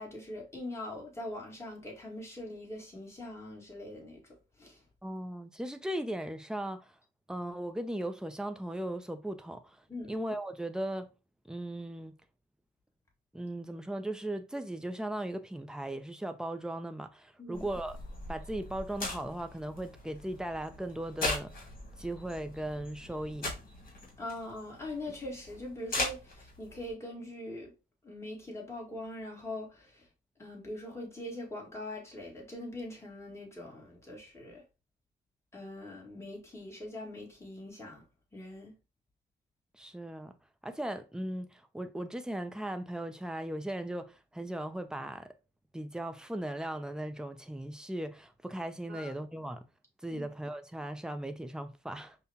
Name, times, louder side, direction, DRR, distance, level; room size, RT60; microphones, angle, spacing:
voice 1, 0.0-4.2 4.6-4.8 9.9-10.1 17.4-17.7 24.2-27.7 28.0-30.1 30.4-34.6 35.5-38.0 38.3-38.8 48.9-49.1 50.1-50.3, left 1 dB, 15° left, 1.7 m, -42 dB
voice 2, 5.0-6.9 7.3-9.8 10.1-11.1 11.5-12.2 13.3-18.0 18.3-21.5 22.0-23.6 39.8-40.3 40.6-45.3 45.7-49.6 50.0-52.2, right 1 dB, 5° right, 0.5 m, -37 dB
sound 1, 17.5-26.9, left 2 dB, 45° left, 1.6 m, -40 dB
5.3 x 2.2 x 2.8 m
cardioid pair, 90°, 20 cm